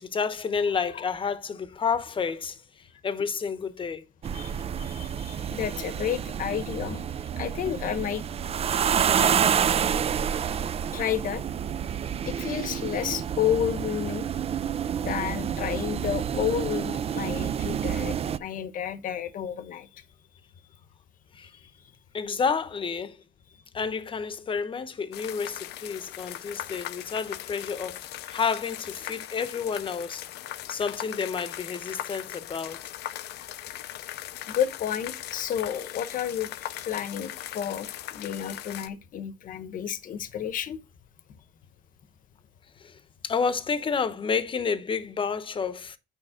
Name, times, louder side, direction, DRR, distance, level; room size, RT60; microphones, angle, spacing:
voice 1, 0.0-4.1 21.3-21.5 22.1-23.2 23.7-30.2 30.7-32.8 42.8-43.0 43.2-46.0, left 5 dB, 30° left, 0.9 m, -30 dB
sound 1, 4.2-18.4, right 8 dB, 35° right, 0.5 m, -28 dB
voice 2, 4.3-7.0 7.4-8.2 10.9-11.4 12.2-14.3 15.0-20.0 21.5-21.6 34.5-40.8, left 9 dB, 55° left, 1.1 m, -31 dB
sound 2, 25.1-38.9, left 13 dB, 75° left, 0.7 m, -39 dB
9.1 x 5.3 x 3.7 m
cardioid pair, 110°, 17 cm